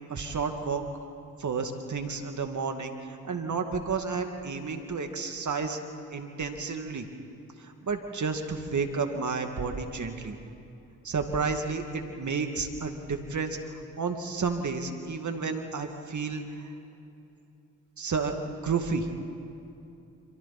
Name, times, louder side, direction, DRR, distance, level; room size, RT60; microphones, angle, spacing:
voice 1, 0.1-0.8 1.4-5.8 6.1-7.1 7.6-10.3 11.0-16.7 18.0-19.1, right 4 dB, 50° right, 5 dB, 2.5 m, -31 dB
27.5 x 27.0 x 4.4 m, 2.8 s
supercardioid pair, 45°, 36 cm